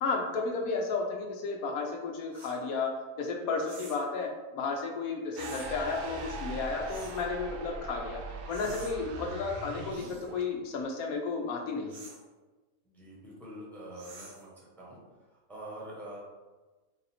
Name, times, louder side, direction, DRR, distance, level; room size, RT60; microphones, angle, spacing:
voice 1, 0.0-2.9 3.2-8.2 8.5-12.0, left 4 dB, 80° left, 1 dB, 1.2 m, -33 dB
sound 1, 2.3-2.6 3.6-4.1 5.3-5.7 6.9-7.3 8.5-8.9 9.9-10.2 11.9-12.2 13.9-14.5, right 3 dB, 60° right, 1.0 m, -49 dB
sound 2, 5.4-10.5, right 3 dB, 75° right, 0.5 m, -41 dB
voice 2, 12.8-14.5 14.8-15.0 15.5-16.2, right 1 dB, ahead, -6 dB, 1.0 m, -45 dB
4.0 x 2.6 x 4.2 m, 1.2 s
omnidirectional pair, 1.5 m